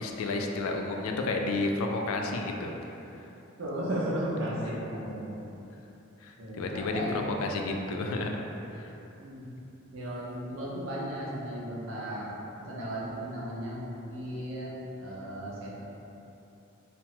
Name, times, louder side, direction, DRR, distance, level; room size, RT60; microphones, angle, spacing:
voice 1, 0.0-2.7 6.2-8.5 8.7-8.9, left 2 dB, 85° left, 2 dB, 0.3 m, -31 dB
voice 2, 3.6-5.4 6.4-7.1 9.2-9.4 9.9-12.3 12.7-15.8, equal, 70° right, -6 dB, 0.6 m, -35 dB
2.8 x 2.2 x 2.8 m, 3.0 s
head